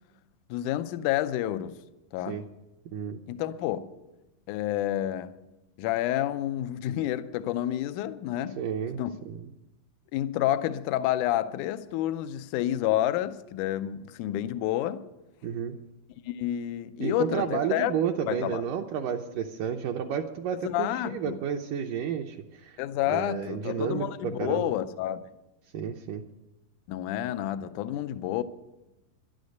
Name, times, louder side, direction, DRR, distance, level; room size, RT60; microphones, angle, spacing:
voice 1, 0.5-1.8 2.1-2.5 3.3-3.9 4.5-5.4 5.8-8.6 9.0-9.1 10.1-15.0 16.3-17.9 18.3-18.6 20.5-21.4 22.8-25.2 26.9-28.4, left 13 dB, 90° left, 1.8 m, -29 dB
voice 2, 8.6-9.0 9.3-9.4 15.4-15.8 17.0-22.8 23.1-24.7 25.7-26.2, right 8 dB, 75° right, 2.1 m, -31 dB
11.5 x 11.5 x 6.5 m
omnidirectional pair, 4.4 m